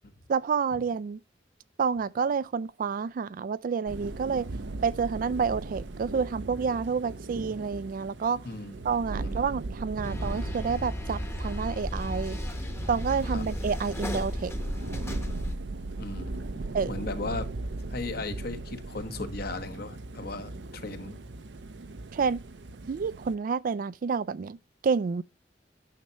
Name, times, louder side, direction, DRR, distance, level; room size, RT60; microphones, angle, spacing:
voice 1, 0.3-1.2 1.8-4.5 4.8-8.5 8.8-12.4 12.9-14.5 16.7-16.9 22.1-22.4 22.9-24.6 24.8-25.2, right 5 dB, 50° right, 0.3 m, -29 dB
sound 1, 3.9-23.3, right 2 dB, 75° right, 0.7 m, -38 dB
sound 2, 10.0-15.6, equal, 15° left, 0.9 m, -34 dB
voice 2, 16.0-16.5 16.9-17.4 17.9-21.2, left 3 dB, 60° left, 1.2 m, -37 dB
9.3 x 6.6 x 2.9 m
head